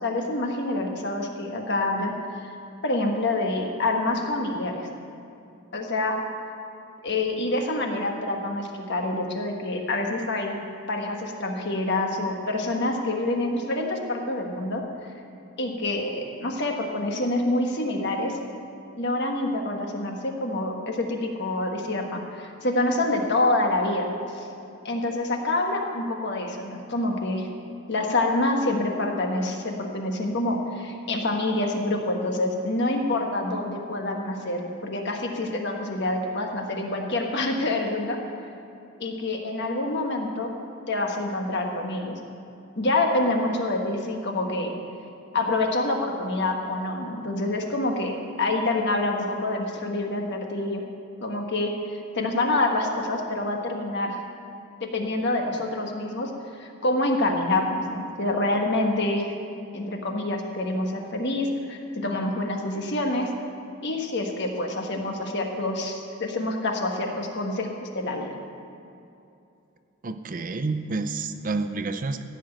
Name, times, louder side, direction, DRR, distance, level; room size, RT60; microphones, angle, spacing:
voice 1, 0.0-2.1 2.4-2.5 2.8-4.8 5.7-6.2 7.0-10.6 10.9-14.9 15.6-18.3 19.0-24.1 24.3-24.4 24.8-27.5 27.9-38.2 39.0-40.5 40.9-42.1 42.8-44.7 45.3-50.8 51.2-54.2 54.8-56.3 56.6-59.3 59.7-63.3 63.8-68.3, left 2 dB, 50° left, 2 dB, 1.4 m, -27 dB
voice 2, 70.0-72.3, right 3 dB, 40° right, 9 dB, 0.5 m, -29 dB
15.0 x 6.0 x 8.9 m, 2.6 s
head